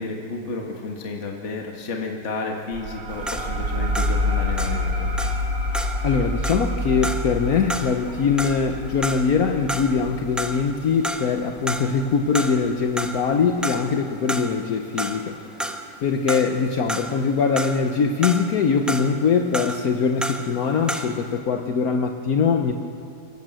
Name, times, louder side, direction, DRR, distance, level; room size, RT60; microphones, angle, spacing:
voice 1, 0.0-5.1, left 3 dB, 45° left, 1 dB, 1.8 m, -31 dB
sound 1, 2.7-11.9, left 1 dB, 80° right, 2.4 m, -27 dB
sound 2, 3.1-10.1 10.4-11.4 11.7-12.7 13.0-21.3, equal, ahead, 0.8 m, -31 dB
voice 2, 6.0-15.3 16.0-22.7, left 5 dB, 60° left, 4 dB, 1.4 m, -22 dB
25.5 x 15.5 x 7.7 m, 2.6 s
omnidirectional pair, 1.9 m